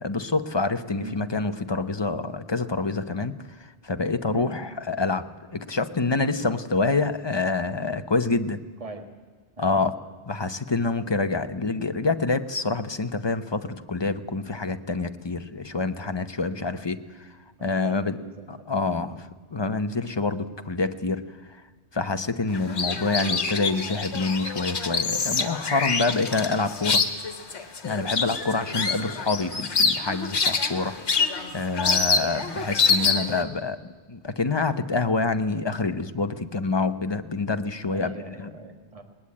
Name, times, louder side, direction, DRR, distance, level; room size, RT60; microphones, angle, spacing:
voice 1, 0.0-3.3 3.8-8.6 9.6-9.9 10.3-17.0 17.6-18.2 18.5-19.2 19.5-21.2 21.5-21.6 21.9-27.0 27.8-33.8 34.1-38.5, left 3 dB, 25° left, 9 dB, 0.8 m, -27 dB
voice 2, 0.9-1.2 4.3-4.6 8.8-9.1 9.6-9.9 16.6-16.9 17.6-19.1 29.0-29.2 37.9-39.0, right 3 dB, 30° right, 6 dB, 1.8 m, -41 dB
sound 1, 22.5-33.4, left 5 dB, 70° left, 1.8 m, -26 dB
20.0 x 20.0 x 8.6 m, 1.4 s
omnidirectional pair, 1.2 m